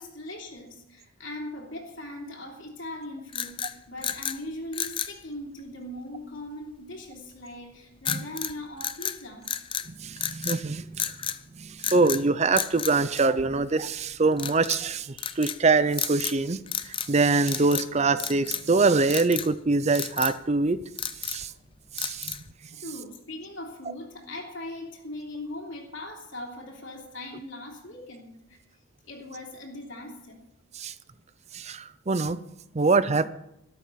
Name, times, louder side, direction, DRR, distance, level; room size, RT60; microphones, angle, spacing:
voice 1, 0.0-9.5 22.7-28.6 29.0-30.4, left 1 dB, 65° left, 1 dB, 3.0 m, -40 dB
sound 1, 3.3-4.4 4.7-5.2 8.0-8.5 8.8-9.9 10.2-10.6 11.0-11.4 11.8-12.2 12.5-13.7 14.4-14.8 15.2-15.6 15.9-16.4 16.7-17.2 17.4-17.9 18.2-18.7 19.1-19.5 19.9-20.4 20.8-21.5 22.0-22.5, left 9 dB, 25° left, 0.5 m, -32 dB
voice 2, 9.9-11.0 11.6-16.6 16.8-20.8 21.2-21.5 22.0-22.3 30.8-30.9 31.5-32.4 32.7-33.3, right 3 dB, 30° right, 14 dB, 0.5 m, -24 dB
13.0 x 11.5 x 5.7 m, 0.82 s
head